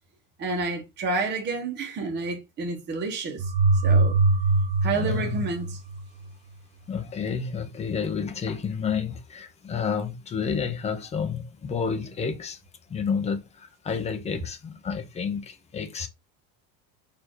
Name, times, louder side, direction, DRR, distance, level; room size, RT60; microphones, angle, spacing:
voice 1, 0.4-3.5 3.8-4.2 4.8-5.8, right 3 dB, 25° right, 0.9 m, -29 dB
sound 1, 3.4-6.3, right 3 dB, 85° right, 1.1 m, -22 dB
voice 2, 4.9-5.5 6.9-12.6 12.9-16.1, left 6 dB, 15° left, 0.4 m, -30 dB
4.2 x 2.6 x 4.4 m
cardioid pair, 165°, 43 cm